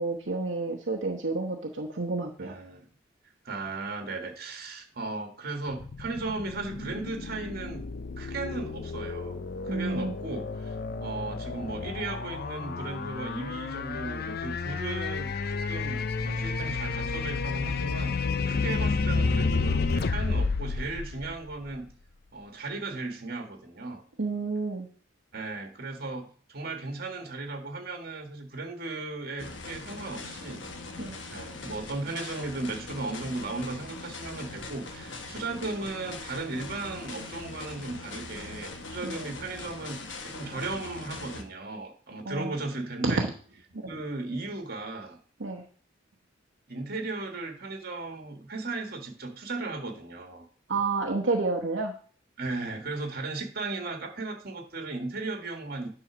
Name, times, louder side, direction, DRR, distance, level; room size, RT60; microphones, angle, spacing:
voice 1, 0.0-2.5 9.7-10.1 24.2-24.9 31.0-31.2 39.0-39.1 42.2-42.5 43.0-43.3 43.8-43.9 45.4-45.6 50.7-51.9, right 3 dB, 70° right, -1 dB, 1.0 m, -29 dB
voice 2, 2.4-2.8 3.4-7.8 8.2-18.2 18.5-21.9 22.3-24.0 25.3-30.7 31.3-43.3 43.8-45.2 46.7-50.5 52.4-55.9, right 3 dB, 55° right, 4 dB, 1.7 m, -36 dB
sound 1, 5.7-21.9, left 4 dB, 55° left, 0.5 m, -31 dB
sound 2, 29.4-41.4, left 3 dB, 75° left, 1.3 m, -41 dB
10.5 x 3.9 x 6.1 m, 0.43 s
head